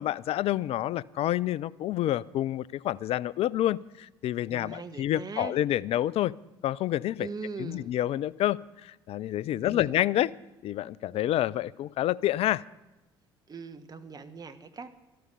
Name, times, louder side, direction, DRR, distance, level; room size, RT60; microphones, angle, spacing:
voice 1, 0.0-6.3 6.6-7.3 7.6-10.3 10.6-12.6, left 13 dB, 50° left, 22 dB, 0.4 m, -28 dB
voice 2, 4.4-5.6 7.2-8.0 9.5-10.0 13.5-14.9, right 4 dB, 30° right, 9 dB, 1.3 m, -41 dB
12.5 x 12.5 x 6.8 m, 1.0 s
figure-of-eight pair, 55°, 13 cm